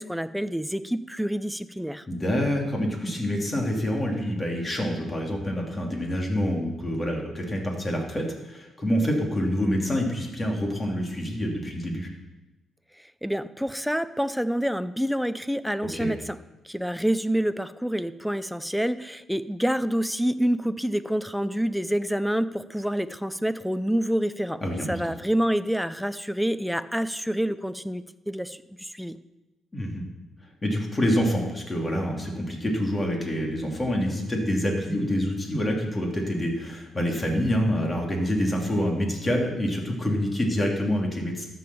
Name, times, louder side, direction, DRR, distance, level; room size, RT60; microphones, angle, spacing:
voice 1, 0.0-2.0 13.2-16.4 16.6-24.6 24.9-29.2, equal, ahead, 12 dB, 0.6 m, -27 dB
voice 2, 2.1-12.1 15.9-16.1 24.6-25.1 29.7-30.0 30.6-41.4, equal, 25° left, 0 dB, 2.9 m, -27 dB
12.5 x 7.0 x 7.0 m, 1.1 s
cardioid pair, 90°, 0 cm